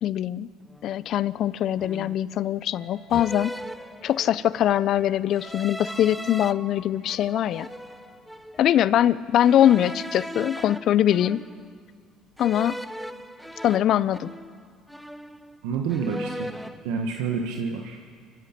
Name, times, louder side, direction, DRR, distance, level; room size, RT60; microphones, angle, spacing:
voice 1, 0.0-0.5 0.8-3.5 4.0-7.7 8.6-11.4 12.4-12.8 13.6-14.3, left 11 dB, 60° left, 18 dB, 0.6 m, -22 dB
sound 1, 0.7-0.9 1.8-2.3 3.1-4.5 5.3-6.5 7.1-8.6 9.4-11.8 12.4-14.6 14.9-15.6 15.9-16.8, equal, ahead, 0.7 m, -38 dB
sound 2, 2.7-9.6, left 3 dB, 30° left, 4.8 m, -51 dB
voice 2, 15.6-16.5 16.8-18.0, right 5 dB, 85° right, 2 dB, 1.4 m, -28 dB
29.0 x 16.0 x 5.9 m, 2.1 s
supercardioid pair, 95°, 0 cm